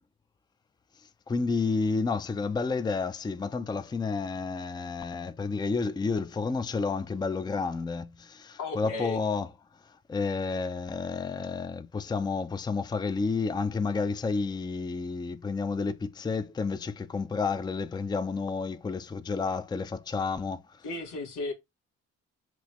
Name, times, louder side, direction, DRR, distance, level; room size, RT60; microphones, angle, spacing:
voice 1, 1.3-9.5 10.1-20.6, left 4 dB, 15° left, 0.4 m, -30 dB
voice 2, 8.6-9.2 20.8-21.5, left 2 dB, 90° left, 1.4 m, -34 dB
6.1 x 2.8 x 3.0 m
cardioid pair, 90°, 30 cm